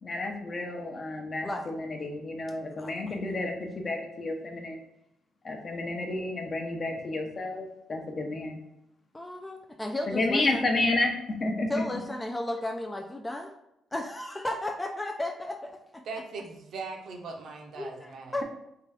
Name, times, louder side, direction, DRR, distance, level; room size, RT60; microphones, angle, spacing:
voice 1, 0.0-4.8 5.4-8.6 10.1-12.0, left 2 dB, 40° left, 2 dB, 0.7 m, -31 dB
voice 2, 9.1-10.6 11.7-13.5 13.9-16.0 17.8-18.4, left 1 dB, 15° left, 3 dB, 0.3 m, -34 dB
voice 3, 16.0-18.4, right 4 dB, 65° right, 2 dB, 0.7 m, -40 dB
3.7 x 2.4 x 3.3 m, 0.84 s
cardioid pair, 90°, 0 cm